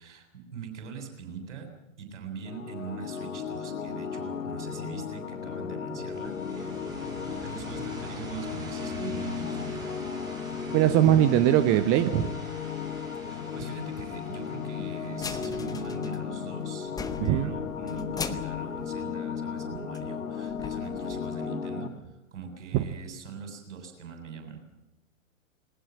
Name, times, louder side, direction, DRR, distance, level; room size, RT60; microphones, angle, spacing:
voice 1, 0.0-1.7 2.0-6.7 7.3-9.9 13.3-16.9 17.2-24.6, right 6 dB, 60° right, 5 dB, 7.5 m, -42 dB
sound 1, 2.4-21.9, left 7 dB, 70° left, 1.9 m, -35 dB
sound 2, 6.1-16.8, right 2 dB, 10° right, 7.3 m, -45 dB
voice 2, 10.7-12.3 17.2-17.5 22.7-22.8, right 12 dB, 30° right, 11 dB, 1.0 m, -21 dB
sound 3, 15.1-16.6 16.9-19.6 19.9-20.0 20.5-21.5, left 5 dB, 10° left, 1.2 m, -40 dB
21.0 x 19.5 x 7.5 m, 0.97 s
figure-of-eight pair, 105°, 41 cm